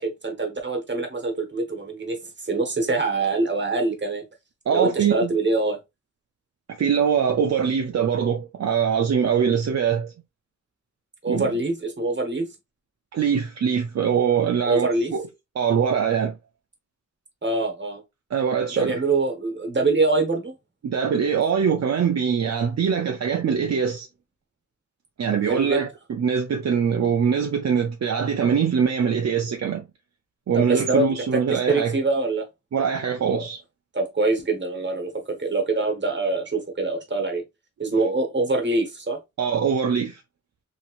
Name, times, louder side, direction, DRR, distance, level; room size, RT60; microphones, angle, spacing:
voice 1, 0.0-4.2 4.7-5.8 11.2-12.5 14.6-15.1 17.4-18.0 18.8-20.5 25.5-25.8 30.5-32.5 33.2-33.4 33.9-37.4 37.8-39.2, right 3 dB, 40° right, 1.0 m, -24 dB
voice 2, 4.7-5.3 6.7-10.1 11.3-11.5 13.1-15.2 15.6-16.3 18.3-19.0 20.8-24.1 25.2-29.8 30.5-31.9 32.7-33.6 39.4-40.2, right 7 dB, 65° right, 0.5 m, -23 dB
3.0 x 2.9 x 2.4 m
wide cardioid pair, 85°, 29 cm